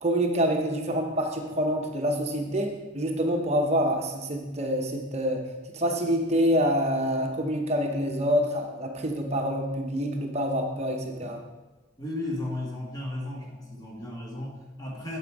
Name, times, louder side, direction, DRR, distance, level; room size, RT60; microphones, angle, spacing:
voice 1, 0.0-5.4 5.7-11.4, equal, 35° right, 2 dB, 0.9 m, -26 dB
voice 2, 12.0-15.2, left 1 dB, 20° left, -3 dB, 1.7 m, -35 dB
9.3 x 8.0 x 4.7 m, 1.2 s
head